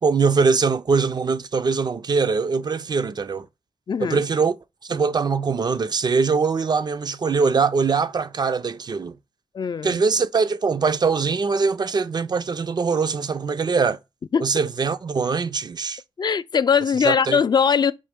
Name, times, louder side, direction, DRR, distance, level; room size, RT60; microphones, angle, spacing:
voice 1, 0.0-3.5 4.0-4.5 4.8-9.2 9.8-14.0 14.4-16.0 17.0-17.4, right 5 dB, 50° right, 0.4 m, -22 dB
voice 2, 3.9-4.2 9.5-10.0 14.3-14.5 16.2-17.9, left 6 dB, 50° left, 0.3 m, -20 dB
5.2 x 2.9 x 3.4 m
cardioid pair, 80°, 9 cm